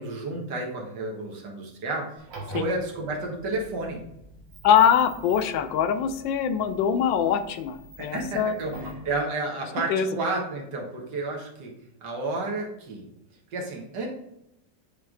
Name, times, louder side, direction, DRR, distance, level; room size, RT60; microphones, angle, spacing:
voice 1, 0.0-4.0 8.0-11.7 12.0-13.1 13.5-14.1, right 2 dB, 70° right, 0 dB, 1.8 m, -31 dB
sound 1, 2.2-9.1, right 1 dB, 85° right, 1.9 m, -45 dB
voice 2, 4.6-8.6 9.9-10.1, left 8 dB, 90° left, 10 dB, 1.3 m, -23 dB
9.1 x 3.2 x 3.7 m, 0.82 s
omnidirectional pair, 2.0 m